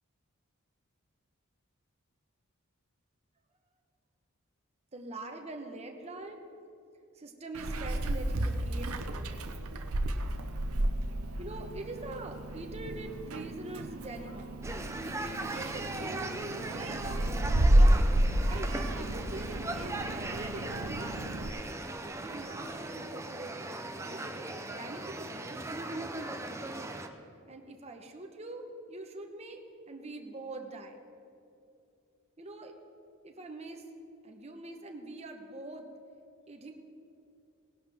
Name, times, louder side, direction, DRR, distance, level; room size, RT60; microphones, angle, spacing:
voice 1, 4.9-6.4 7.1-9.4 11.4-14.5 15.0-17.3 18.5-21.3 22.2-23.6 24.0-26.1 27.5-31.0 32.4-32.7 33.2-33.9 34.2-35.9 36.5-36.7, right 2 dB, 30° right, 4 dB, 1.0 m, -44 dB
Meow, 7.5-21.5, right 1 dB, 80° right, 0.8 m, -30 dB
sound 1, 14.6-27.1, right 2 dB, 15° right, 0.6 m, -38 dB
19.0 x 11.0 x 3.5 m, 2.7 s
head